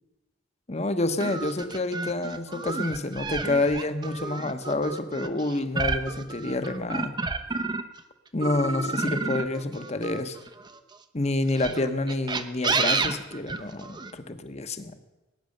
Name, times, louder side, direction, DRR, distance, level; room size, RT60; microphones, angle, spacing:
voice 1, 0.7-7.2 8.3-10.4 11.1-14.9, left 2 dB, 35° left, 10 dB, 1.1 m, -28 dB
sound 1, 1.2-8.0 8.4-10.8 11.5-14.1, right 3 dB, 25° right, 0.8 m, -30 dB
20.0 x 9.7 x 6.6 m, 1.1 s
head